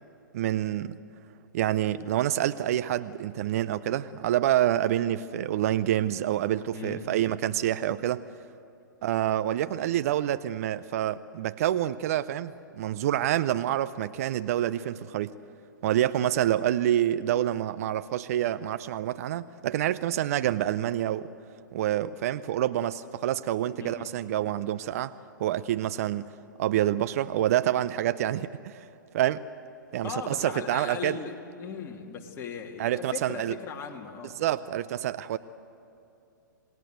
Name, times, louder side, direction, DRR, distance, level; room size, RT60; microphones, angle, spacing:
voice 1, 0.3-1.0 1.5-8.3 9.0-15.3 15.8-21.3 21.7-25.1 25.4-26.3 26.6-28.9 29.1-29.4 29.9-31.2 32.8-33.6 34.4-35.4, right 12 dB, 50° right, 14 dB, 0.6 m, -27 dB
voice 2, 6.7-7.1 23.8-24.1 30.0-34.4, left 6 dB, 25° left, 1 dB, 2.6 m, -38 dB
28.0 x 19.5 x 8.0 m, 2.7 s
figure-of-eight pair, 115°, 11 cm